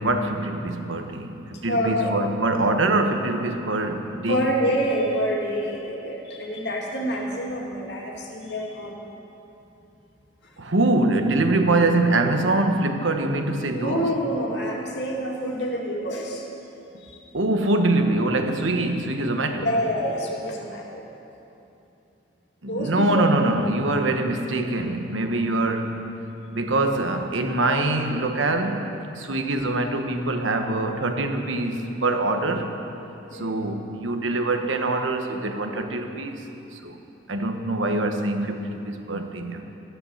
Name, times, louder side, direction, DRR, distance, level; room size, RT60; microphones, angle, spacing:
voice 1, 0.0-4.5 10.6-14.1 17.3-19.7 22.6-26.1 26.5-32.7 33.3-36.5 36.7-37.0 37.3-39.6, right 2 dB, 85° right, 5 dB, 1.2 m, -24 dB
voice 2, 1.7-2.2 4.3-9.0 10.4-10.7 13.7-16.4 17.0-17.2 19.6-21.1 22.7-23.3 33.3-33.6, equal, 65° left, -1 dB, 2.3 m, -27 dB
13.5 x 11.0 x 7.2 m, 2.9 s
head